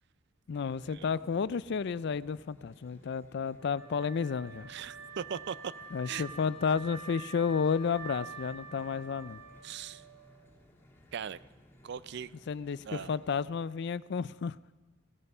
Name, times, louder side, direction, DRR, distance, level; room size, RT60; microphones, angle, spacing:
voice 1, 0.5-4.7 5.9-9.4 12.5-14.6, left 6 dB, 60° left, 0.4 m, -32 dB
sound 1, 0.5-13.5, left 1 dB, 10° left, 1.8 m, -58 dB
Wind instrument woodwind instrument, 3.6-10.6, right 3 dB, 15° right, 4.3 m, -47 dB
voice 2, 4.7-5.7 6.0-6.2 9.6-10.0 11.1-11.4 11.8-12.3 12.9-13.2, right 7 dB, 60° right, 0.4 m, -39 dB
17.0 x 15.0 x 5.5 m
head